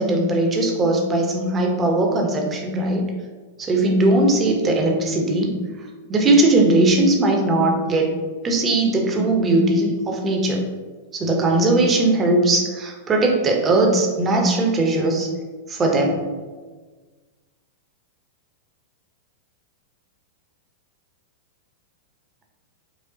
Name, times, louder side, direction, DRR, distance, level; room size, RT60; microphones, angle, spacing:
voice 1, 0.0-3.0 3.6-5.6 6.1-8.1 8.4-10.6 11.1-15.3 15.7-16.2, right 2 dB, 25° right, 1 dB, 0.8 m, -19 dB
4.8 x 2.3 x 2.7 m, 1.3 s
hypercardioid pair, 100°, 0 cm